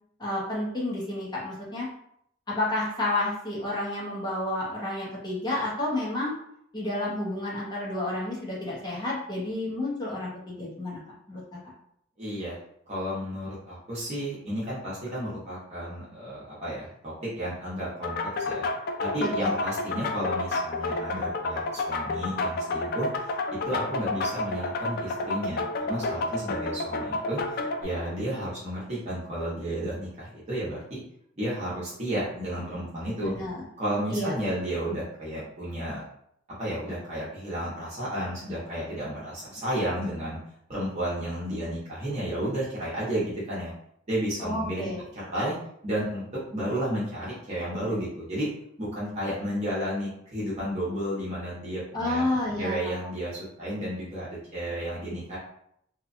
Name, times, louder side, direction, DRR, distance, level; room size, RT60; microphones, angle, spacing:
voice 1, 0.2-1.9 2.5-6.3 6.7-11.0 11.3-11.6 19.2-19.5 33.1-33.6 34.1-34.3 44.4-45.0 51.9-52.9, left 1 dB, 20° left, -5 dB, 0.8 m, -30 dB
voice 2, 12.2-12.6 12.9-18.2 18.5-18.7 19.0-23.3 23.6-25.6 25.9-31.0 31.4-33.4 33.8-36.0 36.6-40.4 40.7-43.7 44.1-45.6 45.8-46.2 46.5-48.5 48.8-52.2 52.6-55.4, equal, 35° right, -8 dB, 0.9 m, -32 dB
sound 1, 18.0-27.8, left 2 dB, 55° left, 0.3 m, -30 dB
2.8 x 2.2 x 2.5 m, 0.71 s
head